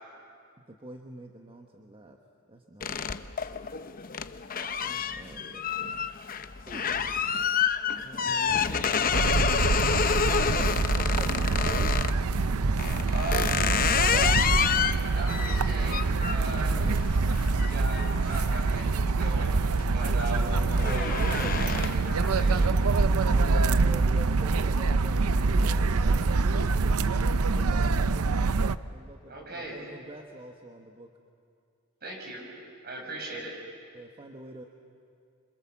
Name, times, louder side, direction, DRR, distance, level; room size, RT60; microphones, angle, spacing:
voice 1, 0.6-2.2 2.5-3.1 4.8-6.1 6.7-6.9 7.9-12.0 16.6-17.2 20.2-21.6 23.1-28.3 28.9-31.1 32.8-33.4 33.9-34.6, right 1 dB, 25° right, 2 dB, 1.3 m, -44 dB
sound 1, 2.8-12.2 12.8-19.2 19.6-20.0 20.3-22.2, left 7 dB, 40° left, 0.7 m, -29 dB
sound 2, 9.1-28.8, right 3 dB, 85° right, 0.6 m, -25 dB
voice 2, 13.1-14.4 15.1-16.8 17.7-18.9 19.2-19.6 19.9-20.5 20.8-22.7 29.3-29.8 32.0-32.4 32.8-33.5, right 2 dB, 50° right, 0 dB, 6.7 m, -38 dB
27.0 x 26.0 x 7.3 m, 2.3 s
head